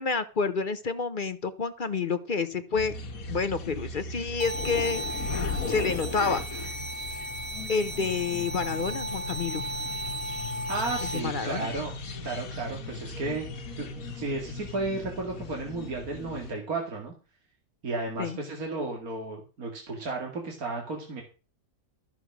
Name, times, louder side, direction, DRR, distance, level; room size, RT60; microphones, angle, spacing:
voice 1, 0.0-2.9 3.3-5.0 5.7-6.4 7.7-9.6 11.1-11.7 18.2-18.4, left 4 dB, 40° left, 12 dB, 0.8 m, -29 dB
sound 1, 2.7-16.5, left 3 dB, 70° left, 1.7 m, -37 dB
sound 2, 4.4-11.2, equal, 25° right, 1.7 m, -35 dB
voice 2, 10.7-11.9 12.2-13.5 13.8-17.1 17.8-21.2, right 3 dB, 75° right, 1 dB, 2.6 m, -33 dB
13.0 x 7.3 x 6.0 m, 0.34 s
omnidirectional pair, 1.5 m